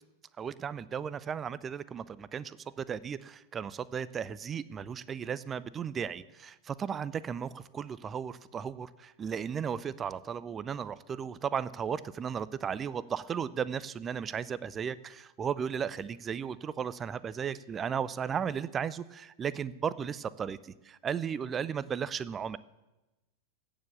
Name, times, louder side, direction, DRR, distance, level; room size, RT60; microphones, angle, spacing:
voice 1, 0.4-22.6, right 7 dB, 20° right, 18 dB, 0.5 m, -35 dB
16.0 x 7.1 x 7.0 m, 1.0 s
figure-of-eight pair, 90°, 0 cm